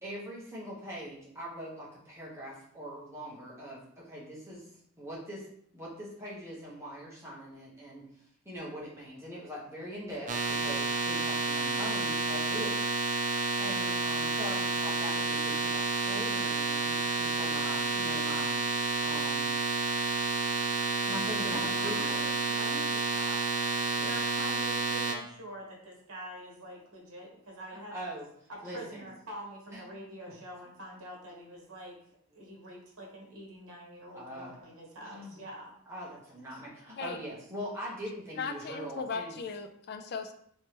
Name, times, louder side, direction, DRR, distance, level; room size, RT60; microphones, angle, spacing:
voice 1, 0.0-4.7 5.0-5.4 5.7-8.0 8.4-12.9 13.6-18.6 19.0-19.5 20.9-22.3 24.0-24.1 27.7-28.2 28.6-29.1 29.7-29.8 34.1-34.5 35.0-35.4 35.9-39.3, equal, 10° right, -6 dB, 1.0 m, -42 dB
sound 1, 10.3-25.1, right 3 dB, 35° right, 0.4 m, -30 dB
voice 2, 21.4-28.0 28.5-32.0 32.3-35.7 36.5-36.6 36.9-37.0, right 1 dB, 70° right, -2 dB, 1.1 m, -45 dB
voice 3, 38.4-40.3, left 5 dB, 45° left, 7 dB, 0.3 m, -37 dB
3.3 x 3.1 x 2.9 m, 0.68 s
head